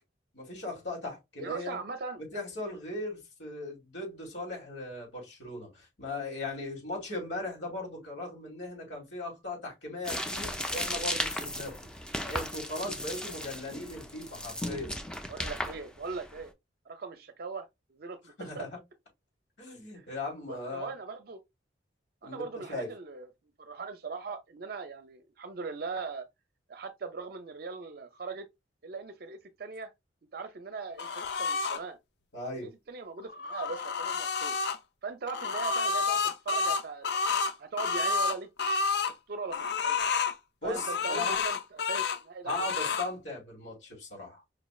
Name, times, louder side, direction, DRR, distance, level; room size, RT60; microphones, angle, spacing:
voice 1, 0.3-1.8 2.2-11.7 12.2-14.9 18.4-18.7 19.6-20.9 22.2-22.4 22.7-22.9 32.3-32.7 40.6-41.4 42.4-44.4, left 2 dB, 80° left, 2.6 m, -38 dB
voice 2, 1.4-2.2 15.3-16.5 16.9-18.7 19.9-20.1 20.5-21.4 22.2-23.3 23.6-26.3 26.7-28.5 28.8-29.9 30.3-32.0 32.6-34.6 35.0-37.1 37.6-38.5 39.3-40.0 40.6-42.9, right 4 dB, 55° right, 0.5 m, -40 dB
sound 1, 10.0-16.4, left 1 dB, 5° left, 0.4 m, -36 dB
sound 2, 31.0-31.8 33.2-34.8 35.3-39.1 39.5-40.4 40.7-42.2 42.5-43.1, left 4 dB, 60° left, 0.5 m, -30 dB
4.8 x 3.1 x 2.3 m
head